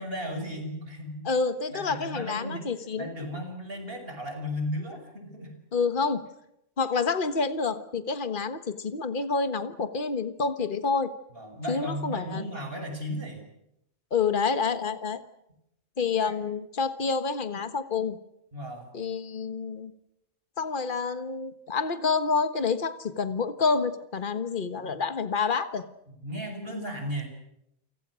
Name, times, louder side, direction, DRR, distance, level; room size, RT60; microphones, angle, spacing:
voice 1, 0.0-1.4 1.7-2.7 3.0-5.6 11.3-13.5 16.2-16.3 18.5-18.9 26.1-27.3, equal, 60° right, 4 dB, 6.6 m, -35 dB
voice 2, 1.2-3.1 5.7-6.2 6.8-11.1 11.7-12.4 14.1-15.2 16.0-18.2 18.9-19.9 20.6-25.8, left 5 dB, 50° left, 10 dB, 1.6 m, -28 dB
29.0 x 25.0 x 6.3 m, 0.81 s
omnidirectional pair, 1.1 m